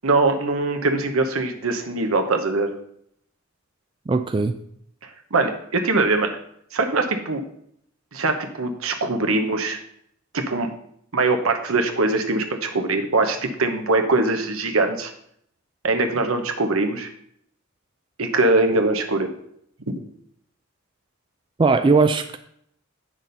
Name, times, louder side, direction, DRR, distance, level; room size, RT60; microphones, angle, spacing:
voice 1, 0.0-2.7 5.3-6.3 6.7-7.4 8.1-9.8 10.3-10.7 11.1-15.1 15.8-17.1 18.2-19.3, right 2 dB, 85° right, 5 dB, 1.0 m, -22 dB
voice 2, 4.1-4.5 21.6-22.4, right 4 dB, 25° right, 8 dB, 0.3 m, -19 dB
8.5 x 6.1 x 4.0 m, 0.69 s
head